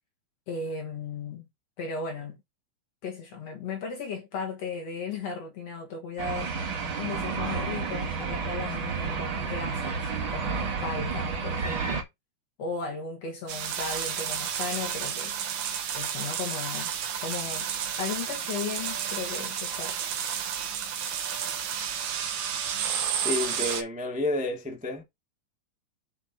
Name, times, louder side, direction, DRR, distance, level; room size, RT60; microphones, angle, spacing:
voice 1, 0.5-1.5 1.8-2.4 3.0-6.6 7.0-12.1 12.6-15.3 15.9-16.9 17.2-17.7 18.0-20.0, left 4 dB, 60° left, 2.1 m, -36 dB
sound 1, 6.2-12.0, right 5 dB, 40° right, 2.2 m, -31 dB
sound 2, 13.5-23.8, right 8 dB, 85° right, 3.2 m, -31 dB
voice 2, 23.2-25.0, left 2 dB, 5° right, 1.2 m, -30 dB
7.7 x 5.0 x 4.2 m
omnidirectional pair, 4.1 m